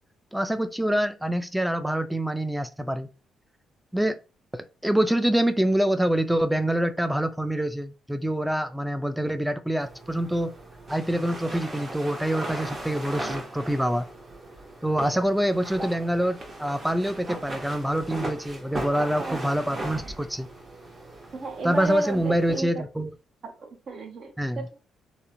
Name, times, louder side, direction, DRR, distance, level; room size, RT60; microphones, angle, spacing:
voice 1, 0.3-3.1 3.9-4.2 4.8-10.5 10.9-14.1 14.8-20.5 21.6-23.1 24.4-24.6, right 1 dB, 5° right, 0.3 m, -25 dB
sound 1, 9.8-22.6, right 1 dB, 35° right, 0.8 m, -38 dB
voice 2, 21.3-22.8 23.4-24.8, right 3 dB, 60° right, 0.6 m, -34 dB
2.8 x 2.0 x 2.5 m
cardioid pair, 90°, 0 cm